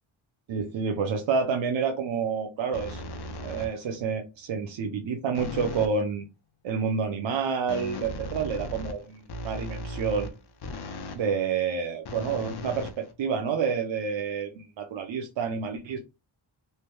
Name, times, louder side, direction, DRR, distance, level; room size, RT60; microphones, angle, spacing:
voice 1, 0.5-3.0 3.4-6.2 6.6-10.3 11.1-16.0, right 6 dB, 70° right, 4 dB, 0.7 m, -29 dB
sound 1, 2.7-4.0 5.3-6.0 7.7-11.3 12.0-13.5, left 2 dB, 55° left, 0.7 m, -37 dB
3.3 x 2.8 x 2.2 m, 0.26 s
cardioid pair, 75°, 48 cm